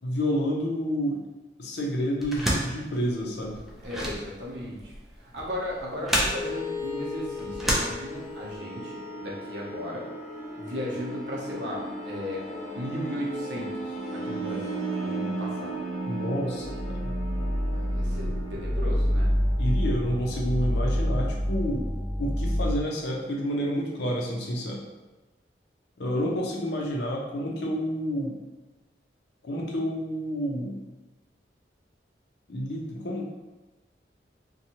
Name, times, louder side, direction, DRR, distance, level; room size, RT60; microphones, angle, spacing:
voice 1, 0.0-1.2 1.6-3.6 16.1-17.1 19.6-21.9 22.2-24.8 26.0-28.4 29.4-30.8 32.5-33.3, equal, 65° left, -1 dB, 0.6 m, -29 dB
sound 1, 2.2-8.5, equal, ahead, 0.3 m, -31 dB
voice 2, 3.8-4.9 5.2-10.1 10.6-12.5 12.7-15.8 17.7-19.3, equal, 75° right, -3 dB, 0.7 m, -36 dB
sound 2, 6.3-22.8, equal, 30° left, 0.9 m, -30 dB
2.7 x 2.2 x 2.8 m, 1.1 s
head